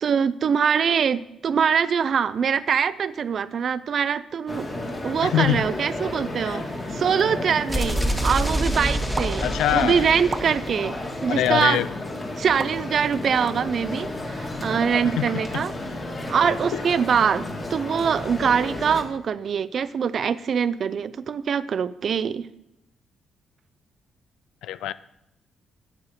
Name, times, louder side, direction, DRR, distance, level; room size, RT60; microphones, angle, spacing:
voice 1, 0.0-10.9 11.2-11.8 12.4-15.7 16.3-22.5, right 7 dB, 55° right, 17 dB, 0.4 m, -23 dB
sound 1, 4.5-19.0, left 1 dB, 25° left, 1.8 m, -32 dB
voice 2, 5.2-5.6 6.4-6.6 9.4-10.1 11.3-11.9 15.2-15.3 16.7-16.8 24.6-24.9, left 12 dB, 85° left, 16 dB, 0.3 m, -23 dB
sound 2, 7.7-11.6, right 1 dB, 5° left, 1.2 m, -27 dB
sound 3, 9.2-9.3 10.3-10.5 11.4-11.6 12.6-12.8, right 4 dB, 35° right, 0.8 m, -30 dB
9.6 x 7.9 x 4.2 m, 0.85 s
cardioid pair, 90°, 0 cm